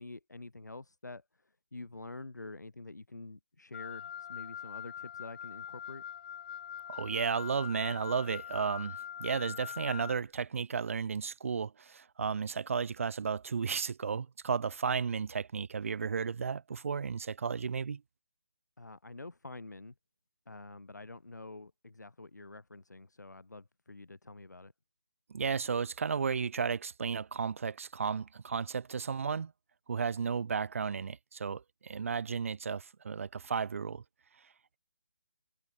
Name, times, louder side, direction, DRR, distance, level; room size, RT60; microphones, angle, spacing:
voice 1, 0.0-6.0 18.8-19.9 20.5-24.7, left 2 dB, 85° left, 7.6 m, -47 dB
Wind instrument woodwind instrument, 3.7-10.2, left 9 dB, 35° left, 2.4 m, -43 dB
voice 2, 6.9-18.0 25.3-29.5 29.9-34.0, right 6 dB, 50° right, 1.8 m, -33 dB
figure-of-eight pair, 155°, 9 cm